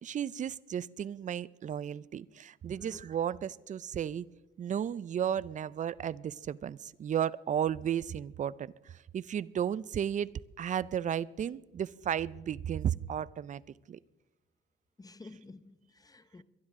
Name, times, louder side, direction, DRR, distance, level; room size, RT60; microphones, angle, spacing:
voice 1, 0.0-4.3 4.6-10.3 10.6-13.6 13.9-14.0, right 9 dB, 40° right, 0.4 m, -34 dB
voice 2, 2.7-3.1 15.0-16.4, left 3 dB, 20° left, 0.7 m, -51 dB
22.5 x 11.5 x 3.6 m
cardioid pair, 90°, 20 cm